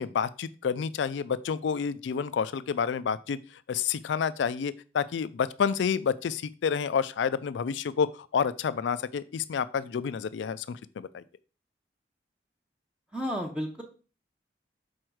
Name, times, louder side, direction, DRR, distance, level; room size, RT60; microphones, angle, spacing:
voice 1, 0.0-3.4 3.7-11.2, left 6 dB, 90° left, 16 dB, 0.4 m, -29 dB
voice 2, 13.1-13.8, equal, 5° right, 1 dB, 0.6 m, -32 dB
6.3 x 4.3 x 4.6 m, 0.37 s
head